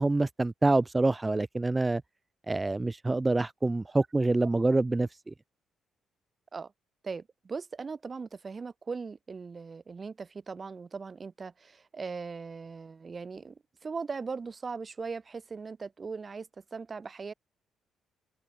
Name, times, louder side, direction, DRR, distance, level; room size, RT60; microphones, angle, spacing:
voice 1, 0.0-2.0 2.5-5.3, right 2 dB, 20° right, 1.2 m, -26 dB
voice 2, 7.0-17.3, right 4 dB, 35° right, 3.4 m, -39 dB
cardioid pair, 90°, 0 cm